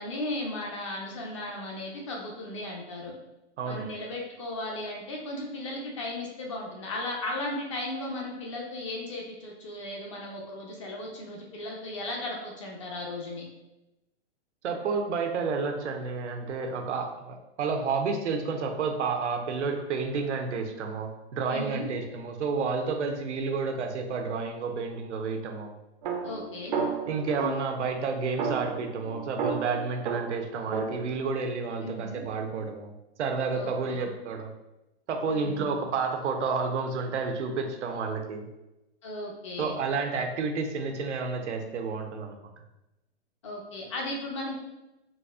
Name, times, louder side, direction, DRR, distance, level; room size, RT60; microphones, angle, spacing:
voice 1, 0.0-3.1 3.6-13.5 21.5-21.9 26.2-26.8 31.8-32.2 33.5-34.0 35.3-35.8 39.0-39.8 43.4-44.6, left 1 dB, 30° left, -1 dB, 0.4 m, -36 dB
voice 2, 3.6-3.9 14.6-25.7 27.1-32.9 33.2-34.5 35.1-38.5 39.6-42.4, right 4 dB, 90° right, 4 dB, 0.7 m, -30 dB
sound 1, 26.0-27.8 28.4-31.0, right 5 dB, 45° right, 0.4 m, -32 dB
4.0 x 2.4 x 2.3 m, 0.95 s
hypercardioid pair, 160°, 34 cm